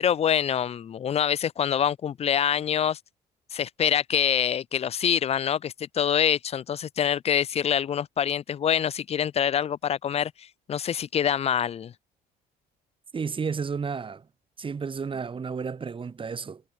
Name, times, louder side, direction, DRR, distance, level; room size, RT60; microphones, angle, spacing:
voice 1, 0.0-3.0 3.5-11.9, left 9 dB, 35° left, 0.5 m, -25 dB
voice 2, 13.1-14.3 14.6-16.6, right 5 dB, 30° right, 4.6 m, -32 dB
cardioid pair, 110°, 17 cm